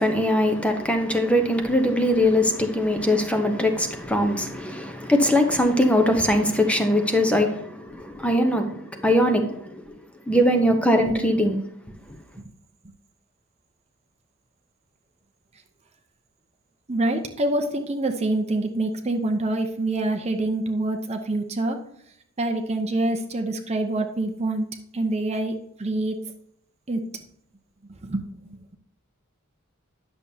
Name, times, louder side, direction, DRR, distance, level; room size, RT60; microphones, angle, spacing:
voice 1, 0.0-9.8 10.3-11.6, left 1 dB, 5° left, 0.8 m, -21 dB
voice 2, 16.9-21.8 22.4-24.7 24.9-26.2 26.9-27.1 27.9-28.6, right 2 dB, 30° right, 0.7 m, -26 dB
10.5 x 6.8 x 2.8 m
head